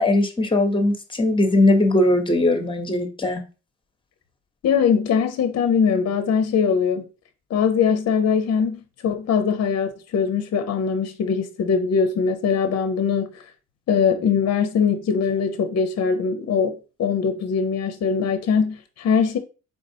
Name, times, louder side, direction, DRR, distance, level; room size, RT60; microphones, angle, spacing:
voice 1, 0.0-3.4, left 1 dB, 15° left, 1.0 m, -19 dB
voice 2, 4.6-7.0 7.5-13.3 13.9-19.4, left 6 dB, 55° left, 0.7 m, -21 dB
4.1 x 3.7 x 2.7 m
cardioid pair, 90°, 30 cm